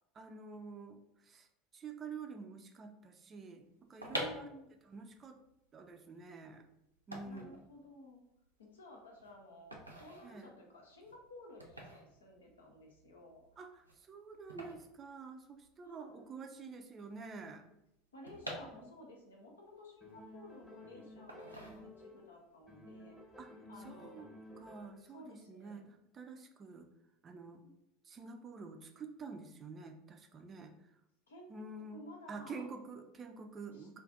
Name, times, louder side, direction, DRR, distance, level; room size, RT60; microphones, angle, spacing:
voice 1, 0.1-1.5 1.7-4.5 4.9-5.4 5.7-6.6 7.1-7.5 10.2-10.5 13.6-17.7 18.6-18.9 23.4-23.5 23.8-26.9 27.2-27.6 28.0-30.7 31.5-32.0 32.3-34.0, right 4 dB, 30° right, 6 dB, 0.4 m, -48 dB
sound 1, 3.8-15.9 16.2-16.3 16.4-19.3 19.7-20.7 21.3-22.3 22.6-22.9, equal, 90° right, 0.5 m, -47 dB
voice 2, 4.1-4.7 7.2-8.2 8.6-13.6 15.8-16.2 18.1-23.2 23.7-24.3 25.1-25.9 27.6-27.7 31.3-32.7 33.7-34.0, left 1 dB, 75° left, 1 dB, 0.6 m, -55 dB
sound 2, 20.0-22.3 22.7-25.1, left 1 dB, 15° left, 1.0 m, -54 dB
2.5 x 2.4 x 3.6 m, 0.83 s
figure-of-eight pair, 75°, 0 cm